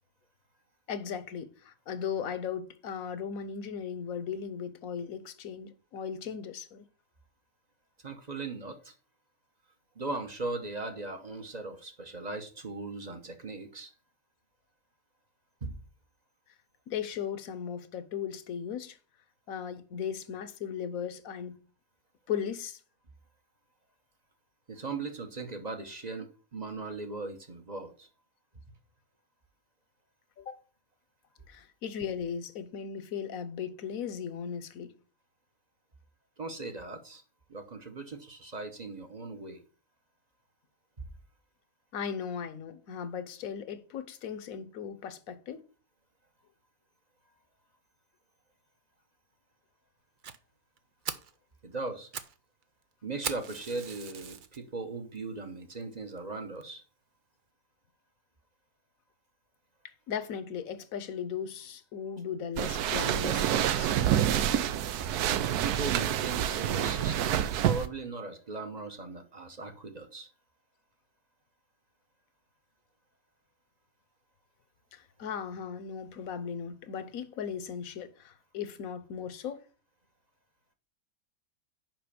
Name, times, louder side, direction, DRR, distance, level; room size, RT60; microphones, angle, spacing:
voice 1, 0.9-6.9 16.9-19.0 19.5-21.6 22.3-22.8 30.4-30.6 31.5-34.9 41.9-45.6 60.1-63.9 74.9-79.6, left 7 dB, 65° left, 1.2 m, -37 dB
voice 2, 8.0-8.9 10.0-13.9 15.6-15.8 24.7-28.1 36.4-37.2 37.5-39.6 51.6-52.1 53.0-56.8 65.2-70.3, right 3 dB, 30° right, 0.9 m, -38 dB
Fire, 50.2-50.4 50.8-50.9 51.0-51.3 51.9-52.4 52.6-52.7 53.2-54.6 55.2-55.3 55.8-55.9 56.2-56.3 56.6-56.7, right 7 dB, 60° right, 0.5 m, -39 dB
sound 1, 62.6-67.9, right 10 dB, 85° right, 1.2 m, -27 dB
6.0 x 5.4 x 6.9 m
omnidirectional pair, 1.6 m